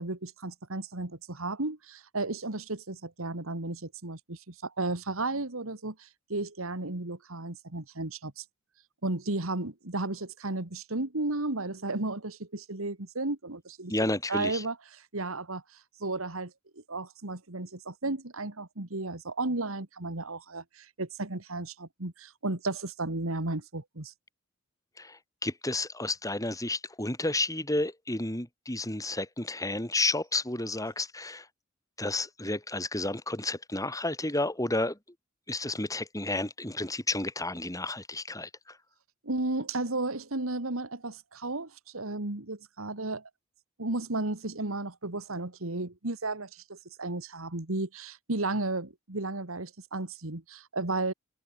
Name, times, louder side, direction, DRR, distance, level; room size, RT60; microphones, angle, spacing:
voice 1, 0.0-8.4 9.0-13.9 14.3-15.6 16.0-16.5 16.9-24.1 39.2-43.3 43.8-51.1, right 2 dB, 90° right, 2.4 m, -34 dB
voice 2, 13.9-14.6 25.0-31.4 32.0-35.0 35.5-38.5, left 2 dB, 15° left, 6.6 m, -31 dB
head